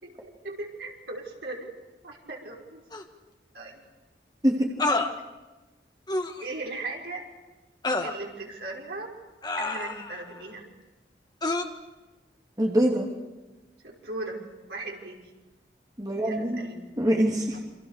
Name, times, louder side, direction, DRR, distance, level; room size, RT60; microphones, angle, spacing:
voice 1, 0.0-2.8 3.5-3.8 6.4-7.2 8.0-9.1 9.6-10.7 13.8-15.2 16.2-16.8 17.5-17.6, right 2 dB, 65° right, 0 dB, 5.7 m, -38 dB
sound 1, 2.9-3.0 4.8-5.1 6.1-6.4 7.8-8.2 9.4-10.2 11.4-11.6, left 2 dB, 25° left, 1.6 m, -28 dB
voice 2, 12.6-13.1 16.0-16.6 17.0-17.6, equal, 20° right, 0 dB, 2.8 m, -24 dB
28.5 x 26.5 x 6.7 m, 1.1 s
head